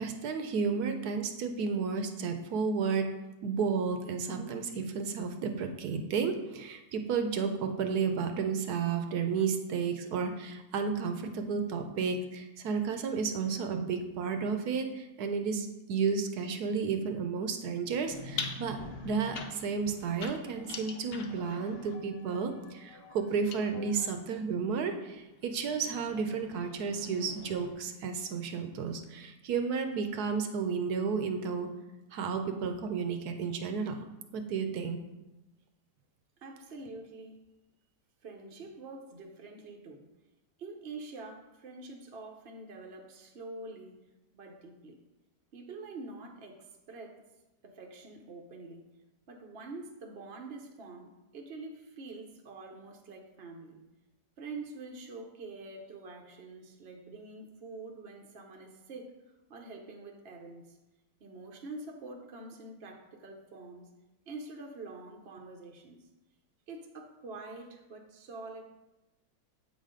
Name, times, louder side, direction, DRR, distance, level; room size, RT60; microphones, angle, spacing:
voice 1, 0.0-3.1 3.4-18.8 19.0-31.7 32.1-34.0 34.3-35.0, right 5 dB, 70° right, 6 dB, 1.1 m, -32 dB
sound 1, 18.1-24.1 25.0-27.7, left 4 dB, 65° left, 0.6 m, -44 dB
voice 2, 36.4-37.4 38.2-40.1 40.6-44.0 44.3-45.0 45.5-47.2 47.6-48.9 49.3-53.8 54.4-60.8 61.2-63.9 64.3-66.0 66.7-68.6, right 3 dB, 50° right, 2 dB, 0.7 m, -46 dB
7.9 x 4.1 x 5.0 m, 1.0 s
omnidirectional pair, 1.9 m